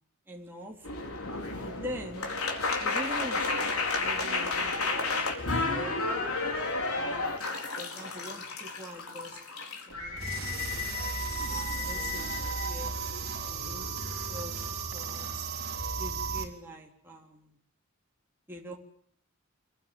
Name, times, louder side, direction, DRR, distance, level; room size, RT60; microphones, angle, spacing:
voice 1, 0.3-0.9 1.6-2.3 2.8-6.4 7.0-7.3 7.8-10.7 11.4-13.9 14.3-14.6 14.9-15.5 16.0-17.6 18.5-18.8, equal, 10° right, -1 dB, 3.7 m, -44 dB
sound 1, 0.8-12.7, left 3 dB, 85° left, 4.5 m, -32 dB
sound 2, 10.2-16.5, right 5 dB, 45° right, 5.3 m, -35 dB
27.0 x 21.5 x 7.9 m, 0.68 s
head